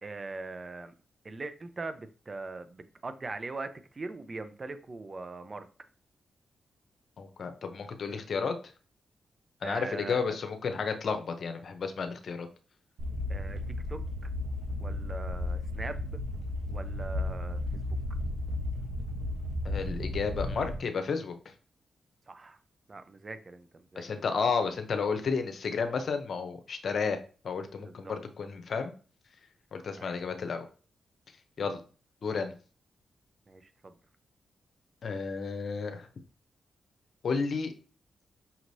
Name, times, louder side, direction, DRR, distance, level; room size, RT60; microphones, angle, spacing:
voice 1, 0.0-0.9 1.2-5.7 9.6-10.4 13.3-13.6 13.9-14.0 14.8-16.2 16.7-18.0 22.3-22.6 22.9-24.1 27.8-28.1 29.9-30.1 33.5-33.9, right 3 dB, 40° right, 10 dB, 0.7 m, -41 dB
voice 2, 7.2-8.7 9.6-12.5 19.6-21.5 24.0-27.2 27.4-28.9 29.7-30.7 31.6-31.8 32.2-32.5 35.0-36.1 37.2-37.7, left 5 dB, 65° left, 7 dB, 0.8 m, -32 dB
sound 1, 13.0-20.8, left 1 dB, 75° right, 1.0 m, -34 dB
5.6 x 3.0 x 2.7 m, 0.37 s
supercardioid pair, 45°, 0 cm